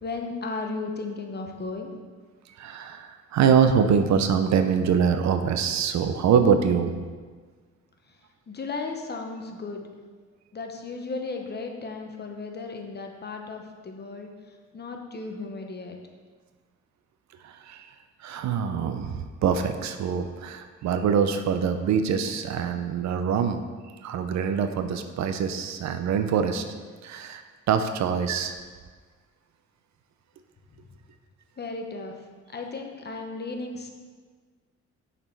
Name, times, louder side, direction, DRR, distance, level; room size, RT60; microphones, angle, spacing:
voice 1, 0.0-1.9 8.1-8.2 8.5-9.9 10.5-16.0 31.6-32.1 32.5-33.9, left 3 dB, 35° left, 3 dB, 0.9 m, -35 dB
voice 2, 2.6-7.0 17.4-17.9 18.2-23.6 24.0-26.6 27.0-27.4 27.7-28.6, right 7 dB, 65° right, 8 dB, 0.6 m, -24 dB
6.7 x 4.2 x 4.5 m, 1.5 s
cardioid pair, 90°, 30 cm